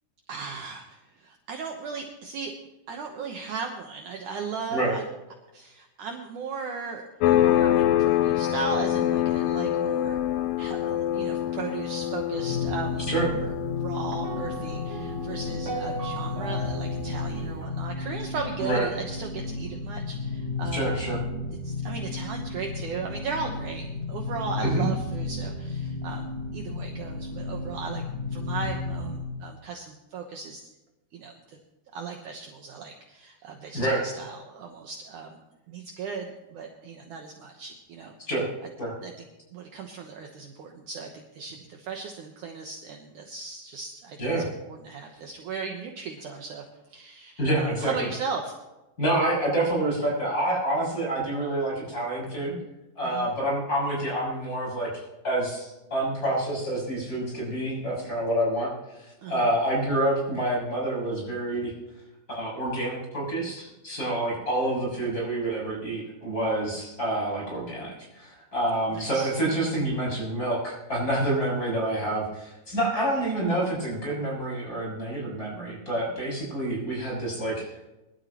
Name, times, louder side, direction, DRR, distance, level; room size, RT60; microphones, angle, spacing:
voice 1, 0.3-2.5 2.9-5.0 5.5-10.2 10.6-20.9 21.6-26.3 26.5-28.0 28.3-30.7 31.1-31.6 31.9-35.4 35.7-38.1 39.0-39.3 39.5-44.3 44.7-48.5 53.0-53.3 59.2-59.5 68.9-69.3, right 5 dB, 65° right, 2 dB, 2.2 m, -37 dB
sound 1, 7.2-17.5, left 12 dB, 80° left, 2.2 m, -26 dB
sound 2, 12.3-29.3, left 3 dB, 60° left, 7.5 m, -33 dB
sound 3, 14.2-18.5, right 4 dB, 40° right, 3.4 m, -39 dB
voice 2, 20.7-21.2 24.6-24.9 33.7-34.0 38.3-38.4 38.8-38.9 44.2-44.4 47.4-47.9 49.0-52.5 53.0-54.9 55.2-58.7 59.0-61.7 62.3-77.7, right 1 dB, 20° left, -4 dB, 6.9 m, -27 dB
23.5 x 12.0 x 3.0 m, 1.0 s
omnidirectional pair, 4.5 m